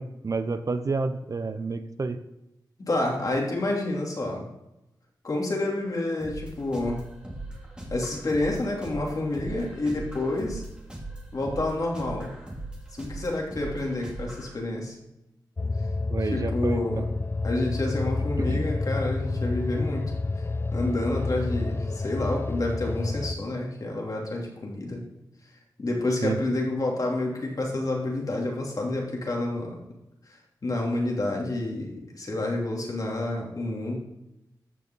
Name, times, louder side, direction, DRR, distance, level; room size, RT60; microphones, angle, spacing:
voice 1, 0.0-2.2 16.1-17.1 18.4-18.7 26.2-26.4, right 4 dB, 50° right, 10 dB, 0.8 m, -30 dB
voice 2, 2.8-4.4 5.2-7.0 7.9-10.6 11.3-12.3 13.0-14.9 16.2-17.1 17.4-20.0 20.7-25.0 25.8-29.8 30.6-34.0, left 2 dB, 50° left, -1 dB, 3.1 m, -29 dB
sound 1, 6.2-14.6, right 2 dB, 10° right, 2.7 m, -39 dB
sound 2, 15.6-23.3, left 3 dB, 30° left, 0.4 m, -29 dB
14.0 x 6.0 x 3.9 m, 0.91 s
wide cardioid pair, 85°, 8 cm